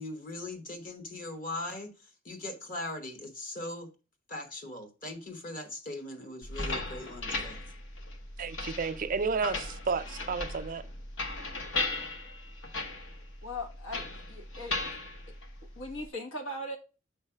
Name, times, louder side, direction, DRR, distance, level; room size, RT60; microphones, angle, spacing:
voice 1, 0.0-3.9 4.3-7.6, left 2 dB, 45° left, 1.2 m, -40 dB
sound 1, 6.4-16.1, left 2 dB, 70° left, 1.0 m, -37 dB
voice 2, 8.4-10.8, right 5 dB, 45° right, 0.4 m, -32 dB
voice 3, 13.4-14.8 15.8-16.8, left 1 dB, 90° left, 1.3 m, -39 dB
6.7 x 3.2 x 5.6 m
head